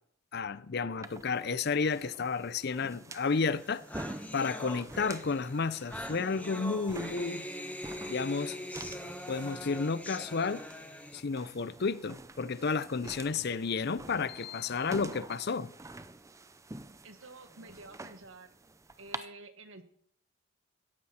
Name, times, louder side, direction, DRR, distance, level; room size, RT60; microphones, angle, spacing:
voice 1, 0.3-3.8 4.3-7.4 8.1-8.6 9.3-10.6 11.1-15.7, left 4 dB, 50° left, 0.5 m, -32 dB
sound 1, 1.0-19.2, right 2 dB, 15° right, 0.5 m, -48 dB
sound 2, 3.3-3.4 3.6-11.2, left 1 dB, 5° left, 0.9 m, -42 dB
voice 2, 17.0-18.5 19.0-19.8, right 2 dB, 70° right, 1.6 m, -50 dB
16.5 x 14.0 x 4.3 m
head